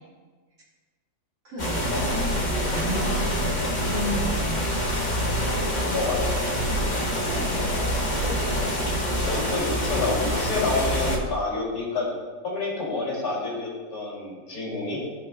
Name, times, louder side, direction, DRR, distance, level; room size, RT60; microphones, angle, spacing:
voice 1, 1.4-4.7 6.7-7.7, equal, 50° right, -5 dB, 2.1 m, -34 dB
sound 1, 1.6-11.2, equal, 30° left, 0.9 m, -26 dB
voice 2, 5.9-6.3 8.2-8.5 9.2-12.1 12.4-15.0, left 3 dB, 55° left, -6 dB, 2.9 m, -29 dB
14.5 x 5.2 x 2.2 m, 1.4 s
omnidirectional pair, 1.9 m